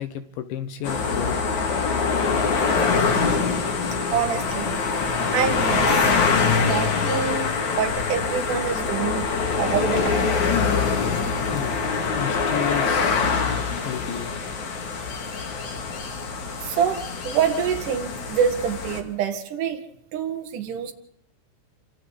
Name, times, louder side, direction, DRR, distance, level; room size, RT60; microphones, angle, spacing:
voice 1, 0.0-1.4 11.5-13.4 13.8-14.4, left 10 dB, 70° left, 9 dB, 3.2 m, -32 dB
sound 1, 0.8-19.0, left 5 dB, 45° left, 3.0 m, -24 dB
voice 2, 4.1-4.8 5.3-6.1 6.5-9.2 9.6-10.5 16.6-19.8 20.1-20.9, right 8 dB, 55° right, 5 dB, 2.5 m, -26 dB
28.0 x 25.5 x 4.1 m, 0.73 s
omnidirectional pair, 5.9 m